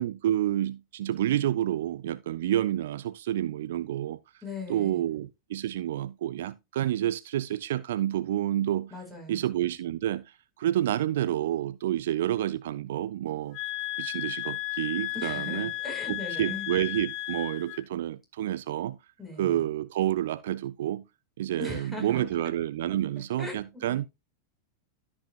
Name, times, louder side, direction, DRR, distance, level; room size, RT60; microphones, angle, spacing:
voice 1, 0.0-4.2 4.7-8.9 9.3-10.2 10.6-13.6 14.0-15.7 16.1-19.0 19.4-21.0 21.4-24.1, right 12 dB, 55° right, 0.4 m, -29 dB
voice 2, 4.4-5.1 8.9-9.4 15.1-16.7 19.2-19.7 21.6-22.3 23.4-24.0, left 3 dB, 10° left, 4.9 m, -39 dB
sound 1, 13.5-17.8, left 20 dB, 40° left, 0.6 m, -34 dB
13.5 x 6.2 x 2.3 m
figure-of-eight pair, 90°, 0 cm